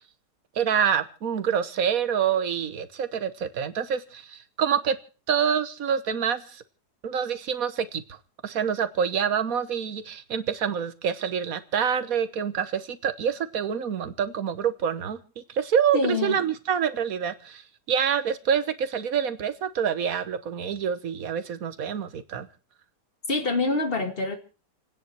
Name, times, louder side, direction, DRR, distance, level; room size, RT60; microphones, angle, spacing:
voice 1, 0.5-5.0 5.3-6.6 7.0-8.2 8.4-22.5, right 8 dB, 60° right, 1.6 m, -27 dB
voice 2, 15.9-16.4 23.3-24.4, left 3 dB, 35° left, 2.3 m, -25 dB
29.0 x 10.0 x 4.5 m
omnidirectional pair, 1.7 m